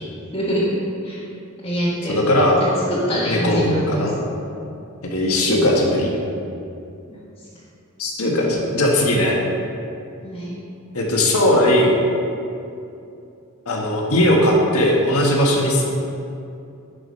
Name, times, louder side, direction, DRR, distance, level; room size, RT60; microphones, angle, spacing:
voice 1, 0.3-0.6 1.0-1.2 1.6-2.2 2.6-3.9 4.2-4.3 10.2-10.6, equal, 25° left, -9 dB, 1.3 m, -24 dB
voice 2, 2.1-2.6 3.3-4.2 5.1-6.1 8.0-9.4 10.9-12.0 13.7-15.8, left 1 dB, 85° left, -1 dB, 1.6 m, -18 dB
10.5 x 5.1 x 5.4 m, 2.6 s
head